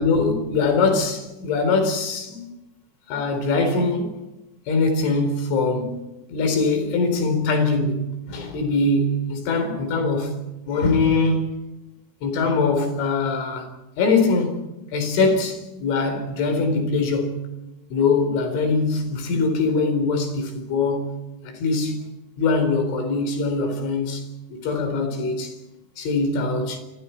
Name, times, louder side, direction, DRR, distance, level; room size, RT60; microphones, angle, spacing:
voice 1, 0.0-2.5 3.1-4.1 4.7-6.0 6.3-10.4 10.7-11.5 12.2-13.7 14.0-14.6 14.9-17.4 17.9-21.1 21.4-22.0 22.4-25.5 26.0-26.8, left 3 dB, 80° left, 6.6 m, -22 dB
29.0 x 25.5 x 4.6 m
omnidirectional pair, 5.5 m